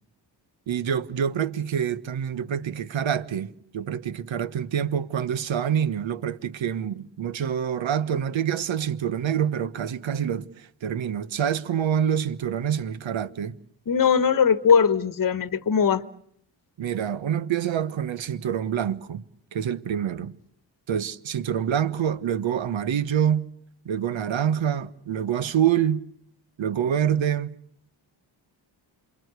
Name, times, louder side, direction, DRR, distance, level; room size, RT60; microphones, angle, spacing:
voice 1, 0.7-13.6 16.8-19.2 19.5-20.4 20.9-23.5 23.8-26.1 26.6-27.6, right 9 dB, 75° right, 1.4 m, -26 dB
voice 2, 13.9-16.0, left 6 dB, 45° left, 1.2 m, -20 dB
27.5 x 22.5 x 8.2 m
cardioid pair, 75°, 47 cm